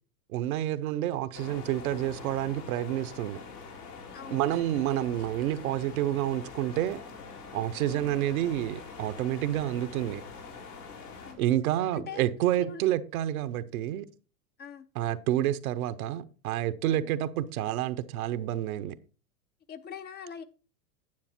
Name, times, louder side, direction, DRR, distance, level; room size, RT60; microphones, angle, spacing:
voice 1, 0.3-3.4 4.3-7.0 7.5-10.2 11.4-14.1 14.9-19.0, right 12 dB, 65° right, 0.9 m, -29 dB
sound 1, 1.3-11.3, left 5 dB, 90° left, 3.5 m, -44 dB
voice 2, 4.1-4.4 7.9-8.1 11.2-11.4 11.9-12.3 12.6-12.8 14.6-14.9 16.9-17.1 19.7-20.4, left 7 dB, 25° left, 0.5 m, -42 dB
9.7 x 7.3 x 4.3 m
hypercardioid pair, 110°, 45 cm